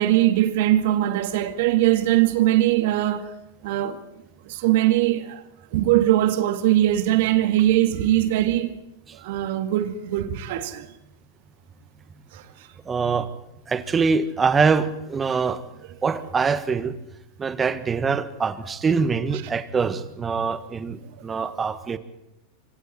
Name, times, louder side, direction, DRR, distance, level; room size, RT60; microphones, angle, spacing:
voice 1, 0.0-3.3 3.6-4.0 4.5-5.4 5.7-8.7 9.2-10.9 12.3-12.4, right 14 dB, 65° right, 1.9 m, -21 dB
voice 2, 12.8-13.3 13.7-15.6 16.0-17.0 17.4-22.0, right 5 dB, 20° right, 1.6 m, -24 dB
26.0 x 24.0 x 4.4 m
hypercardioid pair, 95°, 0 cm